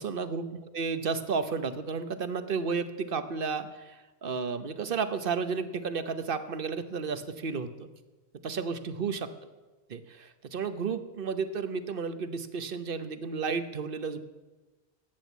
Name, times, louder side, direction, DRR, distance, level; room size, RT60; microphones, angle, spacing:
voice 1, 0.0-7.9 8.4-9.3 9.9-14.2, right 5 dB, 60° right, 11 dB, 1.1 m, -32 dB
14.0 x 9.2 x 8.2 m, 1.2 s
omnidirectional pair, 1.1 m